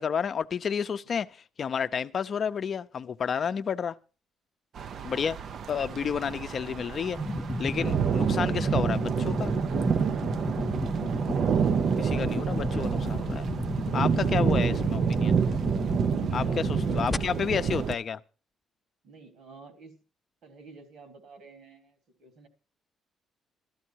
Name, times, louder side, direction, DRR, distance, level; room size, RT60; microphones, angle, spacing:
voice 1, 0.0-4.0 5.0-5.4 5.7-7.2 7.6-9.5 12.0-13.5 13.9-15.4 16.3-18.2, left 7 dB, 45° left, 0.6 m, -31 dB
sound 1, 4.7-17.9, right 7 dB, 55° right, 0.6 m, -28 dB
sound 2, 7.2-17.2, equal, 15° left, 0.8 m, -32 dB
voice 2, 16.1-17.5 19.0-19.9 20.4-22.5, right 3 dB, 75° right, 3.3 m, -49 dB
14.0 x 13.5 x 4.6 m
cardioid pair, 120°, 0 cm